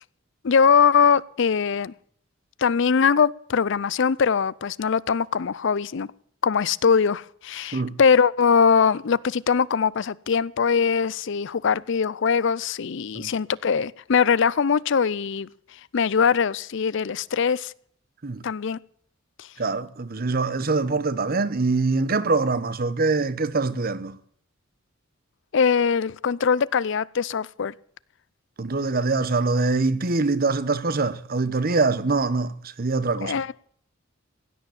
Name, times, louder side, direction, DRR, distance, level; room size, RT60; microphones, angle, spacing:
voice 1, 0.4-1.9 2.6-6.1 6.4-15.5 15.9-17.7 18.4-18.8 19.4-19.5 25.5-27.7 33.2-33.5, left 6 dB, 60° left, 0.5 m, -21 dB
voice 2, 19.6-24.2 28.6-33.3, right 3 dB, 45° right, 0.9 m, -24 dB
16.5 x 9.4 x 7.1 m
head